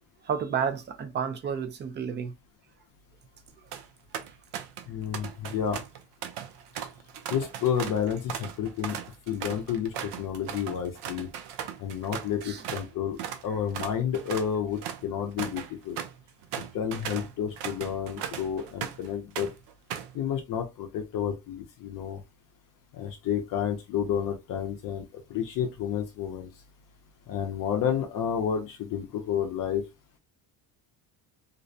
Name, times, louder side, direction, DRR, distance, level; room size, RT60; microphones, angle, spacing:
voice 1, 0.2-2.3 4.3-4.4 12.4-12.6, right 7 dB, 30° right, 0.3 m, -31 dB
sound 1, 3.5-3.8 4.1-4.9 5.1-12.9 13.2-13.4 13.7-19.1 19.4-20.2, right 9 dB, 75° right, 0.6 m, -38 dB
voice 2, 4.9-5.8 7.3-9.0 9.3-11.3 11.8-13.2 13.4-16.0 16.7-19.5 20.1-22.2 22.9-25.0 25.3-26.5 27.3-29.8, left 8 dB, 50° left, 0.5 m, -30 dB
2.5 x 2.0 x 2.5 m
cardioid pair, 140°, 42 cm